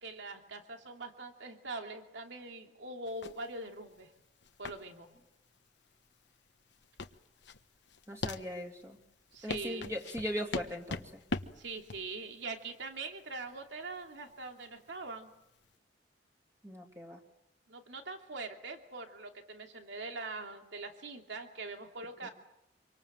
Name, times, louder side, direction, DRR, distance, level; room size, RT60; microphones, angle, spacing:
voice 1, 0.0-4.1 4.6-5.1 9.3-9.9 11.6-15.3 17.7-22.3, right 3 dB, 80° right, 4 dB, 2.7 m, -43 dB
sound 1, 3.1-15.7, left 3 dB, 70° left, 1.2 m, -43 dB
voice 2, 8.1-9.0 9.4-11.2 16.6-17.2 22.2-22.3, equal, 15° right, 1 dB, 2.8 m, -39 dB
26.0 x 24.5 x 7.5 m, 0.87 s
head